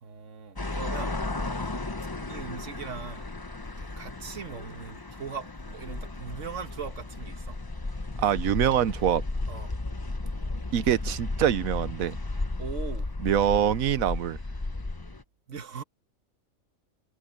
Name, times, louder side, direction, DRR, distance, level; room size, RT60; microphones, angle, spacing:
voice 1, 0.0-1.2 2.3-3.3 3.8-7.6 9.5-9.7 12.6-13.1 15.5-15.8, right 6 dB, 60° right, 1.7 m, -40 dB
sound 1, 0.6-15.2, left 2 dB, 20° left, 0.8 m, -34 dB
voice 2, 8.2-9.2 10.7-12.2 13.2-14.4, right 10 dB, 80° right, 1.2 m, -24 dB
omnidirectional pair, 1.4 m